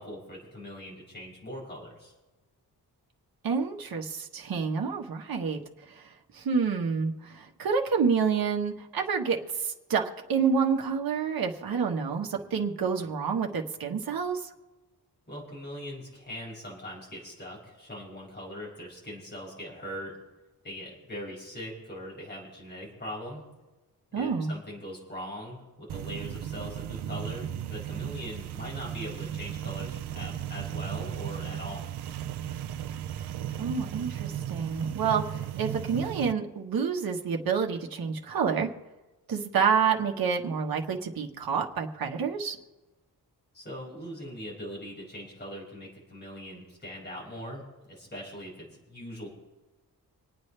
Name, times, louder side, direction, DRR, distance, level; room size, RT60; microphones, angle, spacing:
voice 1, 0.0-2.1 15.3-20.2 20.6-23.4 24.1-31.8 43.5-49.3, equal, 25° left, -4 dB, 5.6 m, -41 dB
voice 2, 3.4-5.6 5.9-6.0 6.3-14.5 24.1-24.5 33.6-38.7 39.3-42.6, right 6 dB, 65° right, 2 dB, 1.4 m, -28 dB
sound 1, 25.9-36.3, right 10 dB, 90° right, 0.7 m, -35 dB
26.5 x 9.1 x 3.3 m, 1.1 s
wide cardioid pair, 160°, 38 cm